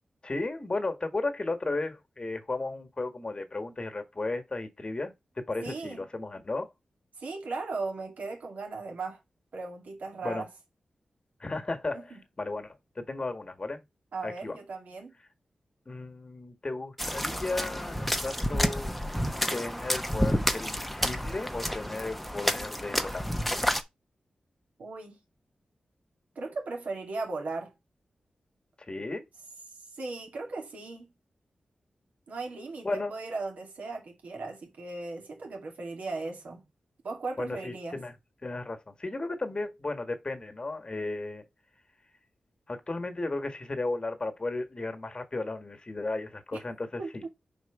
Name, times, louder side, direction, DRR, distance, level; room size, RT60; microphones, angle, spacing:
voice 1, 0.2-6.7 10.2-10.4 11.4-13.8 14.2-14.6 15.8-18.9 19.5-23.2 28.9-29.3 32.8-33.2 37.4-38.1 38.4-41.5 42.7-47.2, left 2 dB, 35° left, 1.5 m, -34 dB
voice 2, 5.6-6.0 7.2-9.2 9.5-10.5 11.9-12.2 14.1-15.1 24.8-25.2 26.4-27.7 29.9-31.1 32.3-36.7 37.0-38.0 46.5-46.6 47.0-47.3, right 3 dB, 80° right, 2.3 m, -37 dB
sound 1, 17.0-23.8, equal, 5° left, 0.9 m, -30 dB
5.0 x 4.4 x 4.8 m
cardioid pair, 60°, 3 cm